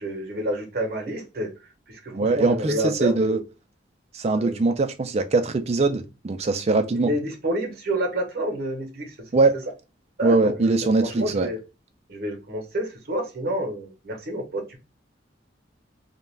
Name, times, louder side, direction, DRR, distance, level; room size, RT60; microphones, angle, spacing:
voice 1, 0.0-1.5 1.9-3.4 4.3-4.6 6.9-9.3 10.2-10.7 11.0-11.6 12.1-14.8, right 1 dB, 55° right, 0.8 m, -29 dB
voice 2, 2.1-3.4 4.1-7.1 9.3-9.6 10.2-11.5, right 3 dB, 35° right, 0.4 m, -22 dB
2.4 x 2.2 x 3.1 m
head